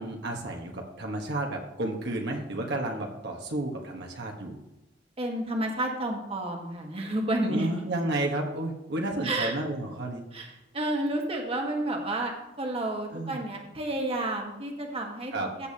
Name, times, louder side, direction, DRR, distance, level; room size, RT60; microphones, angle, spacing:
voice 1, 0.0-4.6 7.5-10.2 13.1-13.4 15.3-15.5, right 1 dB, 65° right, 1 dB, 1.2 m, -32 dB
voice 2, 5.2-7.7 9.2-9.5 10.3-15.3 15.6-15.7, right 1 dB, 35° right, 1 dB, 1.5 m, -30 dB
15.0 x 6.9 x 2.8 m, 0.96 s
head